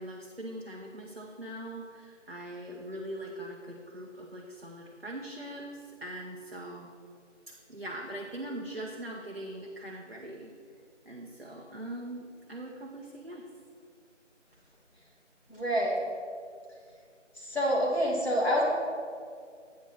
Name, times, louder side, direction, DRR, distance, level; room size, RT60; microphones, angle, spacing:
voice 1, 0.0-6.9 7.5-10.5 11.1-13.5, right 1 dB, 55° right, -1 dB, 0.7 m, -41 dB
voice 2, 15.5-16.0 17.4-18.6, equal, 60° left, -3 dB, 2.0 m, -27 dB
8.4 x 4.3 x 6.0 m, 2.2 s
figure-of-eight pair, 175°, 37 cm